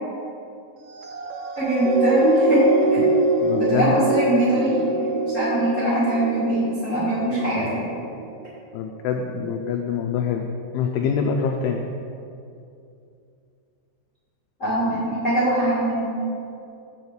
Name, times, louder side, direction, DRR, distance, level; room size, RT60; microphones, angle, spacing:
sound 1, 0.9-7.6 8.2-8.4, right 2 dB, 85° right, 2.7 m, -23 dB
voice 1, 1.5-2.6 3.6-7.9 14.6-16.0, right 1 dB, 60° left, -11 dB, 0.8 m, -22 dB
voice 2, 3.4-3.9 8.7-10.5 10.7-11.8, left 6 dB, 90° left, 3 dB, 2.2 m, -25 dB
8.1 x 4.3 x 7.1 m, 2.5 s
omnidirectional pair, 5.1 m